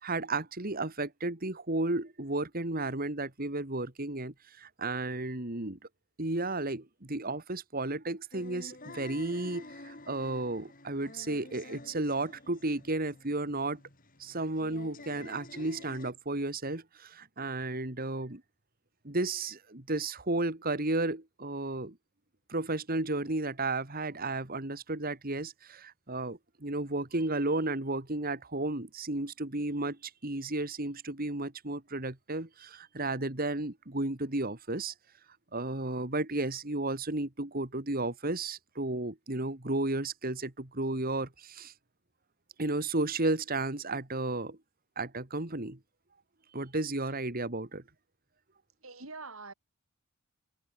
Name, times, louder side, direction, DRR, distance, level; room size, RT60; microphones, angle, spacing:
voice 1, 0.0-5.8 6.2-13.8 14.2-18.4 19.0-22.0 22.5-34.9 35.5-41.7 42.6-44.6 45.0-45.8 46.5-47.8, right 2 dB, 40° right, 2.3 m, -33 dB
sound 1, 8.3-16.1, left 2 dB, 40° left, 5.1 m, -50 dB
voice 2, 48.8-49.5, right 3 dB, 70° right, 5.6 m, -44 dB
head